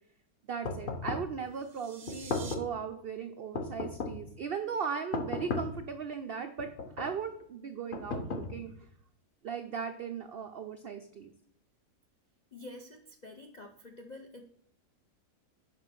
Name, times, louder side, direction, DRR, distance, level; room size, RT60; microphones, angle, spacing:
voice 1, 0.5-8.7 9.4-11.3, right 6 dB, 90° right, 7 dB, 0.5 m, -38 dB
sound 1, 0.6-1.4 2.1-2.8 3.5-4.3 5.1-5.9 6.6-7.2 7.9-8.8, left 3 dB, 45° left, 0.8 m, -36 dB
sound 2, 1.5-2.5, right 5 dB, 40° right, 0.6 m, -48 dB
voice 2, 12.5-14.4, left 2 dB, 65° left, 4 dB, 0.4 m, -48 dB
6.2 x 5.2 x 5.9 m, 0.68 s
omnidirectional pair, 1.7 m